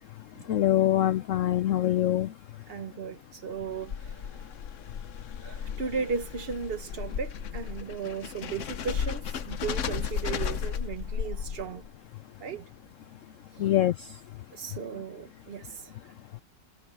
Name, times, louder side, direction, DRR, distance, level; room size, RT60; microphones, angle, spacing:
voice 1, 0.5-2.3 13.6-14.1, left 13 dB, 85° left, 0.6 m, -24 dB
voice 2, 2.7-4.5 5.4-11.9 12.4-12.7 13.5-13.7 14.5-16.1, right 6 dB, 45° right, 0.9 m, -36 dB
sound 1, 3.6-11.9, left 8 dB, 55° left, 1.0 m, -34 dB
omnidirectional pair, 1.9 m